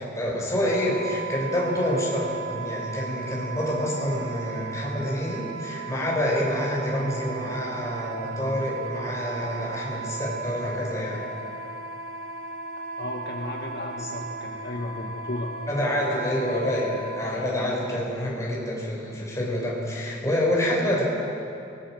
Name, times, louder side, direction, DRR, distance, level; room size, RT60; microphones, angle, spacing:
voice 1, 0.0-11.3 14.0-14.1 15.7-21.0, left 1 dB, 15° left, -4 dB, 6.0 m, -27 dB
Wind instrument woodwind instrument, 0.6-17.4, right 4 dB, 85° right, 3.0 m, -36 dB
voice 2, 13.0-15.5, left 1 dB, 55° left, -1 dB, 1.9 m, -34 dB
26.5 x 21.0 x 6.5 m, 2.8 s
head